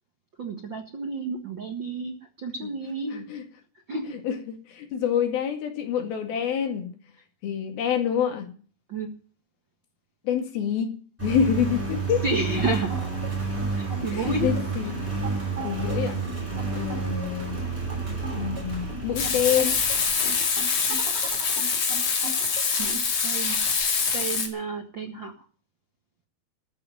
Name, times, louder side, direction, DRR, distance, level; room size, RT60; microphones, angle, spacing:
voice 1, 0.4-3.1 3.9-4.0 8.9-9.1 12.2-12.9 13.7-14.5 20.7-20.8 22.8-23.6 24.1-25.3, right 3 dB, 50° right, 1.5 m, -31 dB
voice 2, 3.1-3.4 4.3-6.9 7.4-8.5 10.3-10.9 11.2-12.2 14.1-14.9 15.6-16.2 16.7-17.6 18.1-19.8, left 8 dB, 70° left, 3.9 m, -27 dB
Engine, 11.2-20.6, right 4 dB, 5° right, 5.9 m, -30 dB
sound 1, 12.4-23.0, right 2 dB, 25° right, 3.9 m, -39 dB
Frying (food), 19.2-24.5, left 5 dB, 45° left, 3.3 m, -25 dB
14.0 x 8.7 x 9.5 m
omnidirectional pair, 4.5 m